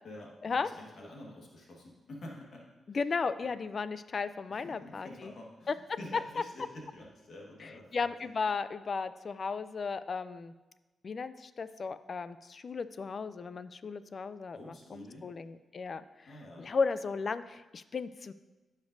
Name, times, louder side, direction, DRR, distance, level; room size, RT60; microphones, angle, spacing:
voice 1, 0.0-2.6 2.9-3.0 4.5-8.1 14.5-15.3 16.3-16.7, left 1 dB, 60° left, -2 dB, 1.5 m, -48 dB
voice 2, 2.9-5.3 5.7-5.8 6.1-6.2 7.6-10.5 11.0-16.3 16.6-18.3, left 5 dB, 45° left, 13 dB, 0.3 m, -35 dB
15.0 x 5.2 x 2.6 m, 1.1 s
wide cardioid pair, 130°, 0 cm